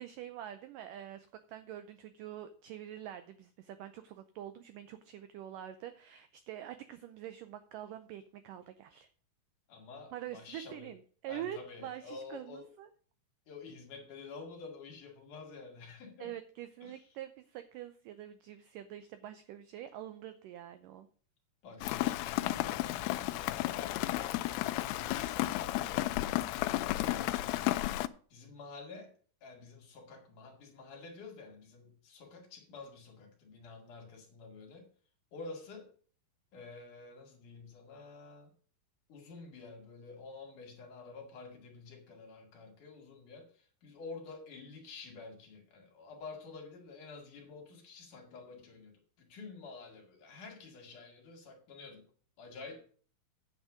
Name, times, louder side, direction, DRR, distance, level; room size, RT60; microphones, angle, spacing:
voice 1, 0.0-9.1 10.1-12.9 16.2-21.1, right 11 dB, 85° right, 1.9 m, -45 dB
voice 2, 9.7-10.9 11.3-12.7 13.5-16.3 16.8-17.0 21.6-24.5 24.9-26.4 27.0-27.3 28.3-29.1 29.4-34.9 35.3-35.9 36.5-38.5 39.1-52.1 52.4-52.8, left 4 dB, 55° left, 3.4 m, -49 dB
Rain, 21.8-28.1, left 16 dB, 85° left, 2.6 m, -33 dB
9.1 x 8.1 x 5.0 m
omnidirectional pair, 4.6 m